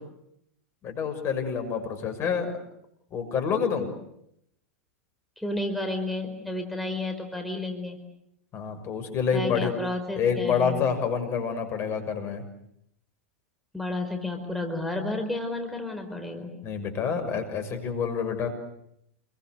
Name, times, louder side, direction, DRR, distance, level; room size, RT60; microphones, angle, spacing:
voice 1, 0.8-2.5 3.1-3.9 8.5-9.7 10.2-12.4 16.6-18.5, left 6 dB, 35° left, 8 dB, 6.4 m, -27 dB
voice 2, 5.4-8.0 9.3-10.8 13.7-16.5, left 2 dB, ahead, 3 dB, 4.6 m, -31 dB
29.0 x 23.0 x 8.1 m, 0.77 s
hypercardioid pair, 95°, 7 cm